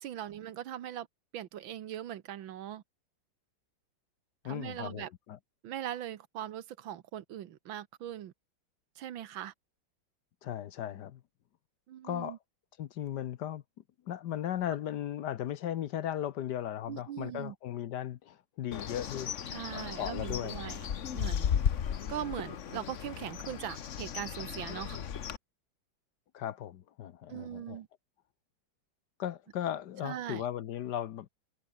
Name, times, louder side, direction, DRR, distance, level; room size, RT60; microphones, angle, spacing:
voice 1, 0.0-1.1 1.3-2.8 4.4-5.1 5.6-8.3 9.0-9.5 11.9-12.4 16.9-17.6 19.5-20.9 21.1-21.5 22.1-25.0 27.3-27.9 30.0-30.5, right 11 dB, 80° right, 1.8 m, -40 dB
voice 2, 4.4-5.4 10.4-11.2 12.0-12.4 12.8-13.6 14.1-19.3 19.7-20.6 26.3-27.8 29.2-31.3, left 11 dB, 65° left, 1.3 m, -37 dB
Bird, 18.7-25.4, left 8 dB, 45° left, 1.1 m, -35 dB
omnidirectional pair, 2.1 m